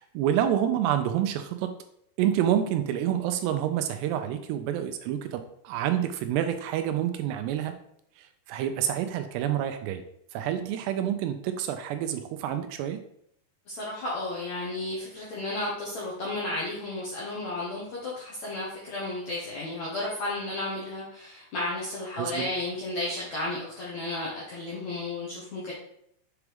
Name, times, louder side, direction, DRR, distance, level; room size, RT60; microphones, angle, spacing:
voice 1, 0.0-1.7 2.2-7.8 8.2-10.0 10.3-13.0 22.2-22.5, right 10 dB, 85° right, 8 dB, 2.6 m, -28 dB
voice 2, 13.7-25.7, left 2 dB, 70° left, -6 dB, 1.7 m, -33 dB
7.1 x 4.7 x 3.4 m, 0.70 s
omnidirectional pair, 5.0 m